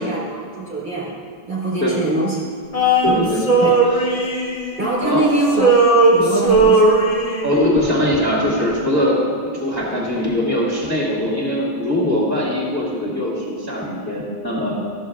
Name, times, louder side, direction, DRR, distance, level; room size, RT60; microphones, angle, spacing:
voice 1, 0.0-2.4 3.0-3.3 3.6-3.7 4.2-4.3 4.8-5.7 6.0-7.1, right 2 dB, 50° right, -8 dB, 1.5 m, -23 dB
Male singing, 2.7-5.2 5.5-7.6, right 2 dB, 35° left, 1.0 m, -16 dB
voice 2, 3.0-3.4 5.0-5.3 7.4-14.8, left 1 dB, 20° right, -5 dB, 2.0 m, -21 dB
13.0 x 6.8 x 2.4 m, 2.2 s
omnidirectional pair, 1.0 m